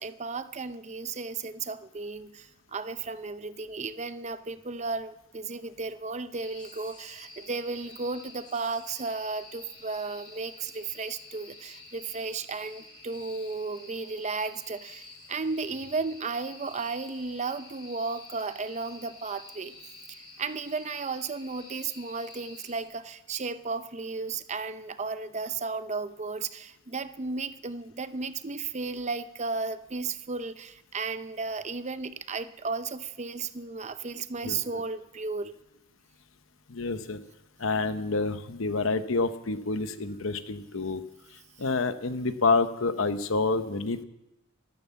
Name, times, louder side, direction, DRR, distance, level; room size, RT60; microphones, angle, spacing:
voice 1, 0.0-19.9 20.4-35.5, right 4 dB, 35° right, 12 dB, 0.6 m, -34 dB
sound 1, 6.4-22.8, left 3 dB, 25° left, 3.8 m, -49 dB
voice 2, 34.4-34.8 36.7-37.2 37.6-41.0 41.6-44.0, left 3 dB, 70° left, 10 dB, 0.9 m, -28 dB
13.0 x 13.0 x 7.0 m, 0.91 s
head